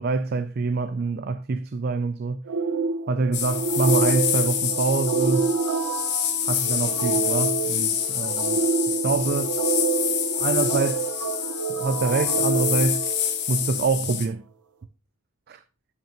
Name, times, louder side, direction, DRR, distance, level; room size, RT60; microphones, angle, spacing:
voice 1, 0.0-2.5 3.1-5.5 6.4-9.6 10.4-11.3 11.8-13.1 13.5-14.4 15.5-15.6, right 3 dB, 45° right, 0.4 m, -26 dB
sound 1, 2.5-13.8, right 5 dB, 85° right, 0.9 m, -27 dB
sound 2, 3.3-14.3, left 9 dB, 50° left, 1.1 m, -27 dB
12.0 x 5.3 x 3.0 m
head